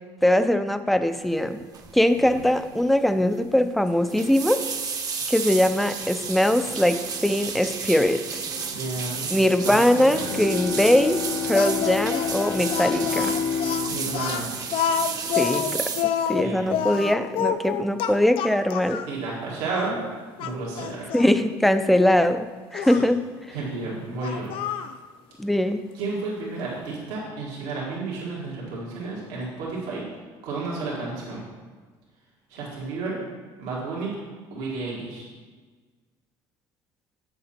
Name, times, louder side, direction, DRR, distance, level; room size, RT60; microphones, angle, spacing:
voice 1, 0.2-1.6 1.9-4.6 5.3-8.2 9.3-13.4 15.4-15.9 16.3-19.0 21.1-22.5 22.7-23.2 25.4-25.9, left 1 dB, ahead, 10 dB, 0.4 m, -21 dB
sound 1, 1.7-2.0 2.2-2.6 2.8-2.9 3.9-16.0, right 5 dB, 40° right, 0.8 m, -32 dB
voice 2, 8.7-9.3 9.6-10.1 13.9-14.5 16.4-16.8 19.1-20.0 20.4-21.1 22.8-22.9 23.5-24.5 25.9-30.0 30.4-31.4 32.5-33.2 33.6-34.1 34.5-35.2, right 3 dB, 85° right, -6 dB, 2.0 m, -32 dB
Bowed string instrument, 10.1-15.7, left 7 dB, 80° left, 1.5 m, -30 dB
Speech, 11.5-19.1 19.7-19.9 20.4-21.3 22.7-23.1 24.2-25.0, left 8 dB, 65° left, 0.5 m, -28 dB
7.6 x 6.8 x 4.3 m, 1.4 s
supercardioid pair, 100°, 10 cm